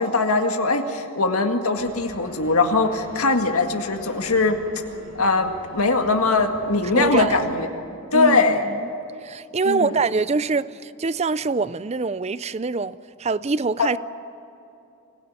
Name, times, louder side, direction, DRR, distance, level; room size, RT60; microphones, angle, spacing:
voice 1, 0.0-4.6 5.2-7.7 8.1-8.6 9.7-10.0 13.8-13.9, left 3 dB, 85° left, 2.0 m, -21 dB
sound 1, 1.7-7.5, equal, 85° right, 7.7 m, -43 dB
voice 2, 6.9-7.4 8.1-8.8 9.2-14.0, right 4 dB, 30° right, 0.5 m, -24 dB
25.5 x 17.5 x 9.6 m
head